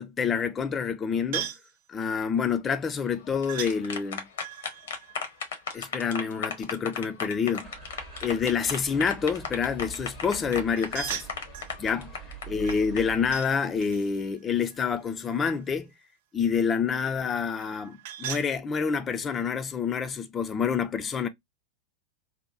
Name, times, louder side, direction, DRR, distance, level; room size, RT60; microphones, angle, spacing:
voice 1, 0.0-1.5 1.9-4.3 5.7-7.7 8.2-11.3 11.8-12.1 12.5-15.9 16.3-21.3, left 6 dB, 20° left, 0.3 m, -27 dB
sound 1, 1.3-1.7 3.5-3.8 4.4-6.2 10.7-11.8 12.6-13.5 13.8-15.7 17.6-18.5, right 11 dB, 55° right, 0.3 m, -39 dB
sound 2, 3.2-13.0, left 5 dB, 60° left, 0.7 m, -35 dB
sound 3, 7.6-13.3, right 6 dB, 25° right, 0.7 m, -44 dB
2.7 x 2.1 x 2.4 m
figure-of-eight pair, 90°, 0 cm